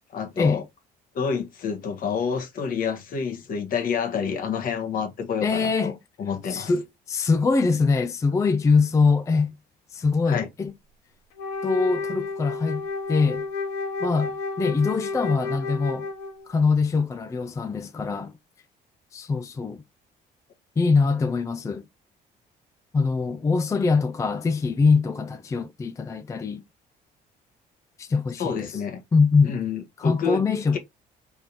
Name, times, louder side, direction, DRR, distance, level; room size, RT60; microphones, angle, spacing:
voice 1, 0.1-0.6 1.1-5.9 6.2-6.7 10.3-10.5 28.4-29.0 29.4-30.4 30.7-30.8, left 6 dB, 55° left, 1.2 m, -28 dB
voice 2, 5.4-6.0 6.5-9.5 9.9-10.7 11.6-12.8 13.1-13.4 14.0-14.3 14.6-16.1 16.5-18.3 19.1-19.8 20.8-21.8 22.9-26.6 28.0-28.8 29.1-29.6 30.0-30.8, left 4 dB, 20° left, 0.3 m, -23 dB
Wind instrument woodwind instrument, 11.4-16.5, left 3 dB, 90° left, 1.4 m, -31 dB
3.7 x 3.5 x 2.7 m
cardioid pair, 110°, 17 cm